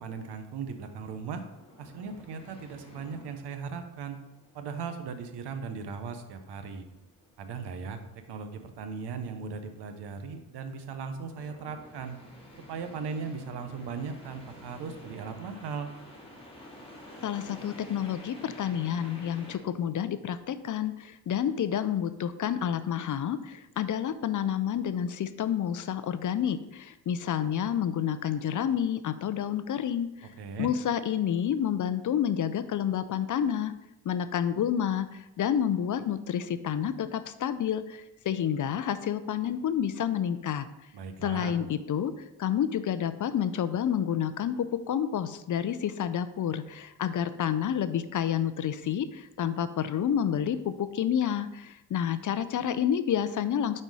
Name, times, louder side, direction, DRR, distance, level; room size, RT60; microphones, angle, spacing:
voice 1, 0.0-1.4 1.8-4.2 4.5-6.8 7.4-8.0 8.3-12.2 12.7-15.9 30.4-30.7 40.9-41.6, right 5 dB, 75° right, 8 dB, 0.9 m, -38 dB
sound 1, 0.7-19.6, left 1 dB, 15° left, 2.0 m, -51 dB
voice 2, 17.2-30.3 30.6-33.7 34.1-40.7 41.2-42.1 42.4-53.8, left 9 dB, 50° left, 13 dB, 0.5 m, -29 dB
5.2 x 4.3 x 4.7 m, 0.93 s
cardioid pair, 60°, 41 cm